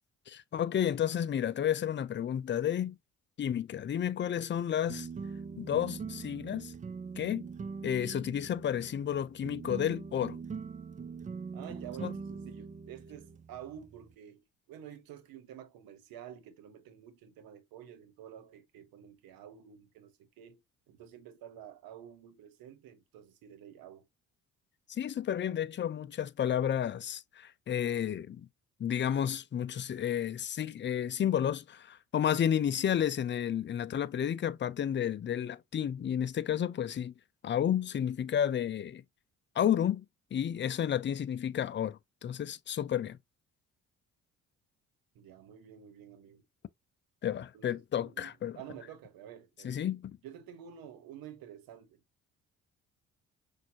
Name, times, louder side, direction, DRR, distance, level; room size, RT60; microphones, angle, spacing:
voice 1, 0.3-3.0 3.4-5.1 5.6-6.7 7.2-7.5 7.8-10.4 12.0-12.1 24.9-28.5 28.8-37.1 37.4-39.0 39.6-40.0 40.3-43.2 47.2-48.6 49.6-50.2, left 9 dB, 35° left, 0.5 m, -31 dB
sound 1, 4.9-14.1, right 5 dB, 20° right, 0.4 m, -42 dB
voice 2, 11.5-20.6 20.9-24.1 45.1-46.4 47.5-49.8 50.2-52.0, right 9 dB, 80° right, 1.2 m, -50 dB
6.0 x 2.6 x 2.8 m
supercardioid pair, 60°, 35 cm